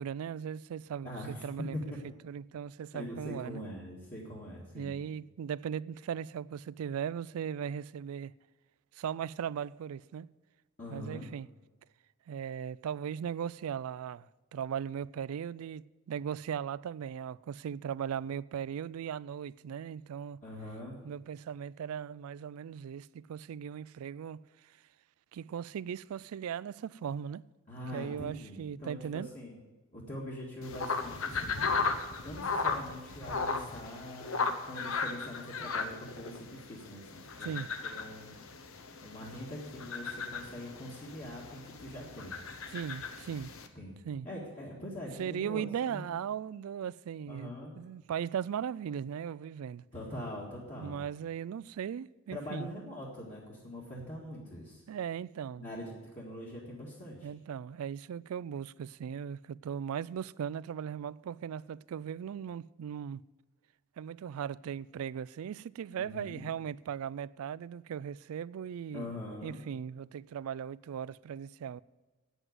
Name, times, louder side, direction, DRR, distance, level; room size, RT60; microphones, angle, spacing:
voice 1, 0.0-1.9 2.2-3.6 4.7-8.3 8.9-10.3 10.9-11.5 12.3-20.4 21.0-24.7 25.3-27.4 27.9-29.3 37.4-37.7 42.7-43.5 44.0-44.3 45.2-49.8 50.8-52.7 54.9-55.7 57.2-63.2 64.0-69.1 69.4-71.8, right 8 dB, 85° right, 0.3 m, -38 dB
voice 2, 1.0-2.0 2.9-5.0 10.8-11.3 20.4-21.0 27.7-29.6 29.9-31.7 32.2-37.0 37.4-37.5 37.8-38.3 39.0-42.4 43.8-44.0 44.2-46.1 47.3-47.7 49.9-51.0 52.3-54.8 55.6-57.3 66.0-66.5 68.9-69.6, left 1 dB, 35° left, 1.8 m, -43 dB
sound 1, 30.6-43.7, left 4 dB, 75° left, 0.9 m, -36 dB
9.1 x 8.0 x 7.9 m
head